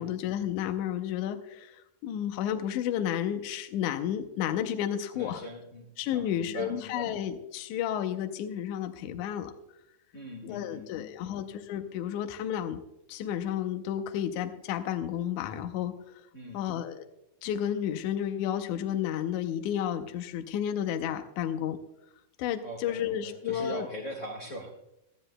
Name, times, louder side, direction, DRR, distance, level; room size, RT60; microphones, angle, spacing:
voice 1, 0.0-5.4 6.0-9.5 10.4-12.8 13.1-15.9 16.5-17.1 17.4-21.8 22.4-23.9, left 10 dB, 75° left, 7 dB, 2.0 m, -32 dB
voice 2, 5.1-7.1 10.1-11.4 16.3-16.7 22.6-24.7, equal, 40° left, -1 dB, 1.2 m, -41 dB
19.5 x 13.0 x 2.2 m, 0.85 s
omnidirectional pair, 3.7 m